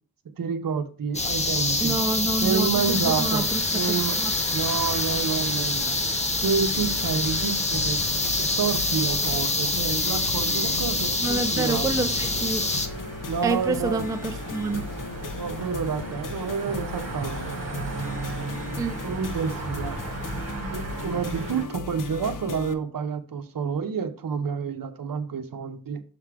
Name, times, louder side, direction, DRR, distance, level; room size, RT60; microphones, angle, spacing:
voice 1, 0.4-2.0 2.4-3.5 3.7-4.2 4.5-6.0 6.4-8.0 8.4-11.9 13.2-14.0 15.4-17.6 19.0-20.2 20.7-26.0, right 6 dB, 65° right, 0.8 m, -29 dB
sound 1, 1.1-12.9, left 2 dB, 20° left, 0.7 m, -26 dB
voice 2, 1.8-4.3 11.2-12.7 13.4-14.9 18.8-19.0, right 3 dB, 10° right, 0.4 m, -28 dB
sound 2, 2.8-21.6, right 3 dB, 45° right, 1.5 m, -37 dB
sound 3, 6.7-22.7, left 5 dB, 60° left, 0.6 m, -37 dB
6.6 x 3.7 x 4.6 m
wide cardioid pair, 145°, 37 cm